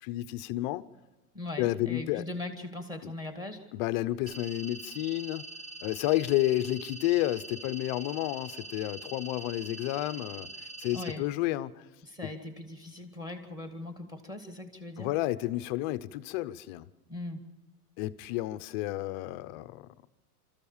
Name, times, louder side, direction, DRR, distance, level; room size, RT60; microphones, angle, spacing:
voice 1, 0.0-0.8 1.6-2.3 3.0-3.1 3.7-5.5 5.8-10.5 10.8-11.7 12.2-12.3 15.0-16.9 18.0-19.9, left 16 dB, 30° left, 0.6 m, -31 dB
voice 2, 1.3-3.6 10.9-11.2 12.0-15.1 17.1-17.4, left 2 dB, 10° right, 1.9 m, -40 dB
sound 1, 4.3-11.1, right 2 dB, 40° right, 4.4 m, -44 dB
27.5 x 14.0 x 7.2 m
supercardioid pair, 170°, 46 cm